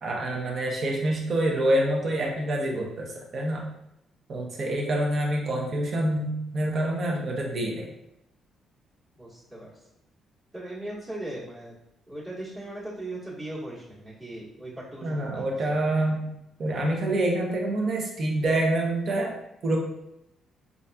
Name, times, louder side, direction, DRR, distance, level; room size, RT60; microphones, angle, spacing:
voice 1, 0.0-3.7 4.3-7.9 15.0-16.3 16.6-19.3 19.6-19.8, right 1 dB, 55° right, 0 dB, 0.8 m, -26 dB
voice 2, 9.2-9.7 10.5-11.8 12.1-15.8, right 1 dB, 25° right, -8 dB, 1.2 m, -38 dB
4.0 x 2.5 x 2.2 m, 0.83 s
cardioid pair, 90°, 0 cm